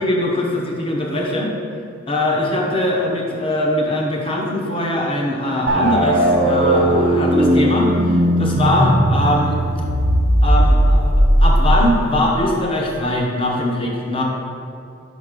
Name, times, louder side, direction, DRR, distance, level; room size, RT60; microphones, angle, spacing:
voice 1, 0.0-1.5 2.1-9.6 10.4-14.2, left 1 dB, 25° left, -1 dB, 0.8 m, -21 dB
sound 1, 5.7-12.3, right 1 dB, 75° right, 1.0 m, -16 dB
5.2 x 5.0 x 5.1 m, 2.4 s
head